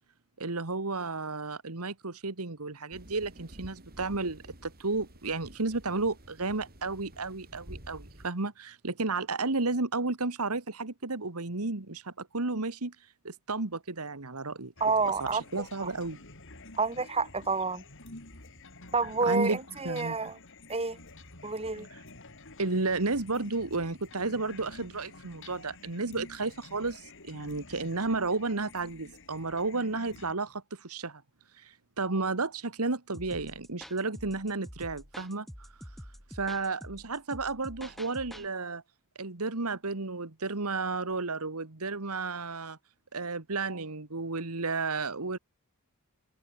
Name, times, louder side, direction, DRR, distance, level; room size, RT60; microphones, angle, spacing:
voice 1, 0.4-13.0 13.2-14.7 15.2-16.2 19.3-19.6 19.8-20.2 22.6-31.2 31.5-35.7 36.3-38.8 39.2-42.8 43.1-45.4, right 3 dB, 80° right, 1.9 m, -32 dB
sound 1, 2.9-8.3, equal, 45° right, 7.1 m, -50 dB
sound 2, 14.8-30.3, left 2 dB, 60° left, 6.5 m, -50 dB
voice 2, 14.8-15.4 15.8-15.9 16.8-17.8 18.9-20.4 20.7-21.0 21.4-21.9, right 4 dB, 30° right, 3.8 m, -29 dB
sound 3, 33.1-38.5, equal, ahead, 4.3 m, -47 dB
open air
head